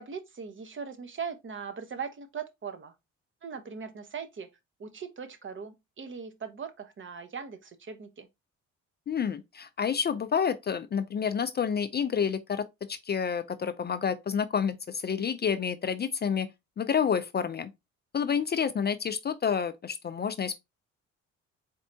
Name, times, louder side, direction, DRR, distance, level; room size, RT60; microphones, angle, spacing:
voice 1, 0.0-2.9 3.4-4.5 4.8-8.3, right 6 dB, 40° right, 0.8 m, -40 dB
voice 2, 9.1-16.5 16.8-17.7 18.1-20.6, left 7 dB, 35° left, 0.4 m, -29 dB
4.5 x 3.3 x 2.6 m
cardioid pair, 90°, 30 cm